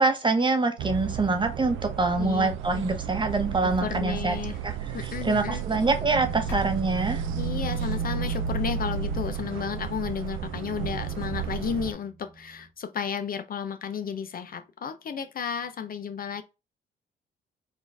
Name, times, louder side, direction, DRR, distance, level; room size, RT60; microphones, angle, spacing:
voice 1, 0.0-4.4 4.6-7.2, right 3 dB, 25° right, 1.0 m, -25 dB
sound 1, 0.8-11.9, right 8 dB, 90° right, 0.6 m, -33 dB
voice 2, 2.2-2.8 3.8-4.6 4.9-5.6 7.3-16.4, left 7 dB, 45° left, 0.6 m, -33 dB
sound 2, 4.1-5.3 6.1-6.2 6.5-8.7 10.1-10.2 10.7-10.8 11.0-11.1 11.7-11.8, left 4 dB, 70° left, 1.4 m, -43 dB
sound 3, 5.3-12.7, right 4 dB, 60° right, 1.4 m, -40 dB
4.1 x 2.5 x 3.4 m
cardioid pair, 90°, 20 cm